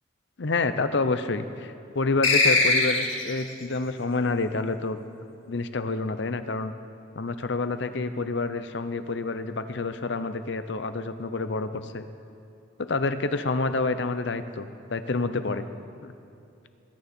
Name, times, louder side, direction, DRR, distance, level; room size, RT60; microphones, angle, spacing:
voice 1, 0.4-5.0 5.5-6.7 7.1-12.1 12.9-15.7 16.0-16.1, left 3 dB, 65° left, 11 dB, 0.7 m, -28 dB
sound 1, 2.2-3.4, left 3 dB, 85° left, 2.4 m, -21 dB
20.5 x 9.7 x 4.3 m, 2.8 s
head